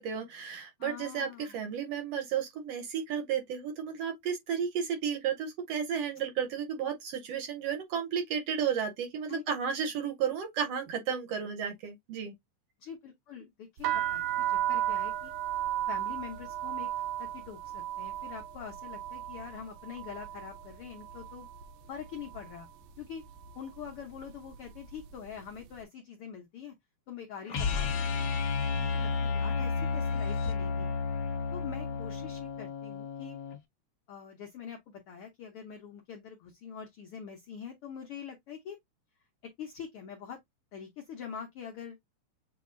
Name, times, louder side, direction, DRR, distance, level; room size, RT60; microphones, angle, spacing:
voice 1, 0.0-12.3, right 7 dB, 70° right, 1.6 m, -33 dB
voice 2, 0.8-1.6 9.3-9.4 12.8-15.3 15.9-16.9 17.2-21.5 21.9-22.7 23.0-23.2 23.5-26.7 27.1-28.3 28.7-30.9 31.5-33.4 34.1-38.8 39.6-40.4 40.7-42.0, left 7 dB, 75° left, 1.3 m, -44 dB
sound 1, 13.8-21.7 22.0-22.6 23.3-23.6 23.8-25.3, right 12 dB, 90° right, 2.1 m, -35 dB
sound 2, 27.5-33.6, left 4 dB, 45° left, 1.7 m, -32 dB
6.8 x 2.7 x 2.5 m
omnidirectional pair, 3.5 m